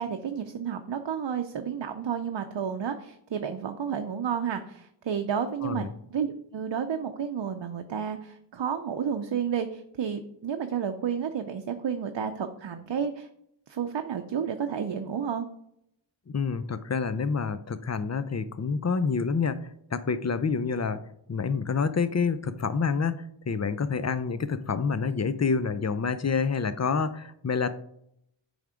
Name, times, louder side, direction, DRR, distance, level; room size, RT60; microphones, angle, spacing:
voice 1, 0.0-13.3 13.7-15.5, right 7 dB, 70° right, 6 dB, 0.6 m, -31 dB
voice 2, 16.3-19.6 19.9-21.0 21.3-27.7, left 5 dB, 35° left, 13 dB, 0.5 m, -28 dB
9.2 x 3.6 x 5.0 m, 0.74 s
wide cardioid pair, 65°, 45 cm